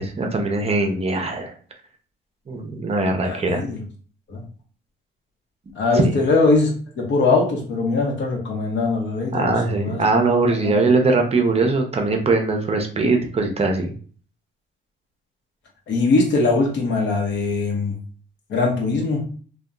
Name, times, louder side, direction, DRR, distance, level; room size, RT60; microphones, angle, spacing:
voice 1, 0.0-1.5 2.5-3.6 6.0-6.2 9.3-13.9, right 3 dB, 30° right, 3 dB, 0.5 m, -21 dB
voice 2, 3.2-3.8 4.3-4.4 5.8-10.0 10.6-10.7 15.9-17.9 18.5-19.3, left 3 dB, 65° left, 0 dB, 0.9 m, -21 dB
2.7 x 2.2 x 2.2 m, 0.42 s
cardioid pair, 90°, 20 cm